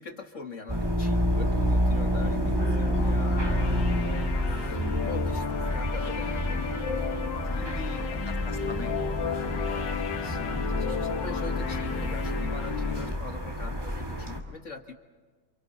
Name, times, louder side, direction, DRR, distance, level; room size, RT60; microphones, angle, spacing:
voice 1, 0.0-4.1 4.5-6.6 7.6-8.1 9.7-14.9, left 4 dB, 40° left, 4 dB, 1.8 m, -43 dB
sound 1, 0.7-14.4, equal, 10° right, 2.3 m, -29 dB
sound 2, 2.1-13.1, left 7 dB, 65° left, 1.7 m, -34 dB
voice 2, 4.7-5.3 7.4-7.7 8.0-8.1 8.4-10.4, left 2 dB, 25° left, 7 dB, 0.6 m, -43 dB
29.0 x 28.0 x 4.2 m, 1.4 s
omnidirectional pair, 2.1 m